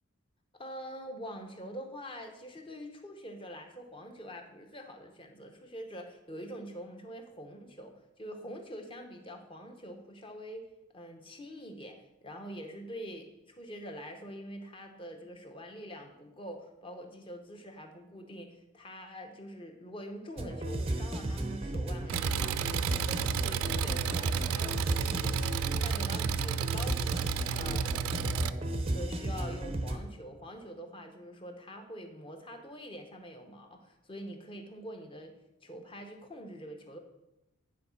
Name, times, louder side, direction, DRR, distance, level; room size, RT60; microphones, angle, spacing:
voice 1, 0.5-10.6 10.9-25.4 25.8-35.3 35.6-37.0, equal, 25° left, 4 dB, 0.8 m, -45 dB
sound 1, 20.4-30.0, right 1 dB, 25° right, 0.5 m, -34 dB
Engine, 22.1-28.5, right 8 dB, 80° right, 0.3 m, -32 dB
9.5 x 3.8 x 5.7 m, 0.94 s
head